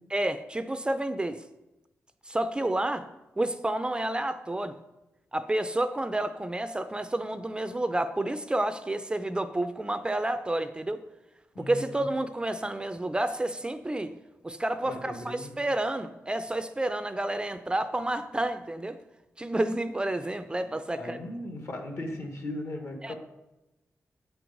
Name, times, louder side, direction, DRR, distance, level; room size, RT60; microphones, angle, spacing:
voice 1, 0.1-1.4 2.3-3.1 3.4-4.7 5.3-11.0 11.6-14.1 14.4-19.0 19.4-21.2 23.0-23.1, right 1 dB, 20° right, 11 dB, 0.4 m, -30 dB
voice 2, 11.5-12.0 14.8-15.5 20.9-23.1, left 1 dB, 60° left, 4 dB, 1.3 m, -37 dB
7.6 x 4.6 x 5.2 m, 0.98 s
cardioid pair, 85°, 5 cm